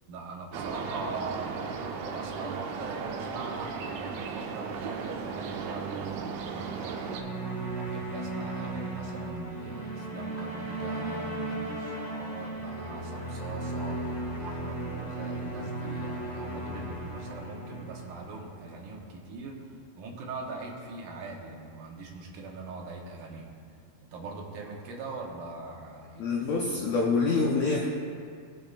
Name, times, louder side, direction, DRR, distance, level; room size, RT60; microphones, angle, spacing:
voice 1, 0.1-23.6 24.1-26.6, right 3 dB, 70° right, -1 dB, 2.5 m, -41 dB
sound 1, 0.5-7.2, right 5 dB, 85° right, 1.6 m, -36 dB
sound 2, 6.5-18.9, right 2 dB, 30° left, 0.6 m, -36 dB
voice 2, 26.2-27.9, left 4 dB, 80° left, -2 dB, 1.5 m, -26 dB
20.5 x 7.0 x 2.5 m, 2.3 s
omnidirectional pair, 4.1 m